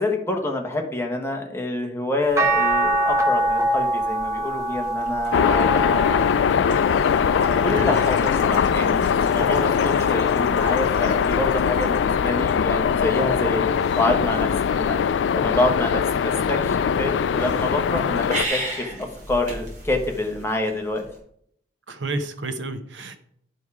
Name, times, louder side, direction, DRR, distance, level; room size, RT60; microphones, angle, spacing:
voice 1, 0.0-5.7 7.6-15.0 15.3-18.8 19.3-21.0, left 2 dB, 15° left, 2 dB, 1.2 m, -27 dB
sound 1, 2.4-8.7 9.2-10.6 12.0-12.1, right 1 dB, 15° right, 1.5 m, -25 dB
sound 2, 4.4-21.2, right 1 dB, 40° right, 2.9 m, -38 dB
sound 3, 5.3-18.4, left 7 dB, 80° left, 0.3 m, -21 dB
voice 2, 7.7-8.0 21.9-23.2, right 2 dB, 85° right, 9 dB, 1.0 m, -30 dB
11.0 x 5.3 x 4.8 m, 0.68 s
head